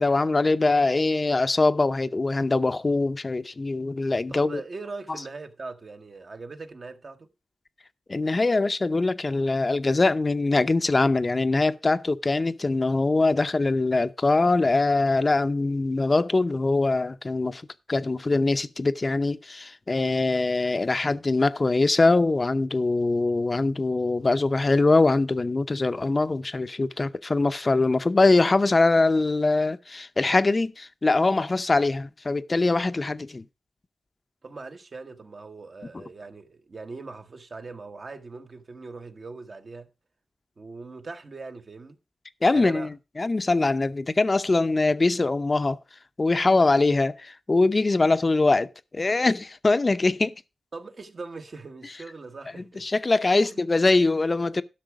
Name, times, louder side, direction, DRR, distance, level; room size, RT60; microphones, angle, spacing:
voice 1, 0.0-4.6 8.1-17.6 17.9-33.4 42.4-42.9 43.2-45.8 46.2-48.7 48.9-50.3 52.8-54.6, left 3 dB, 35° left, 0.6 m, -22 dB
voice 2, 4.3-7.3 34.4-39.9 40.6-42.0 42.5-42.9 50.7-52.9 53.3-53.6, right 3 dB, 50° right, 1.2 m, -40 dB
12.0 x 6.1 x 4.8 m
cardioid pair, 75°, 0 cm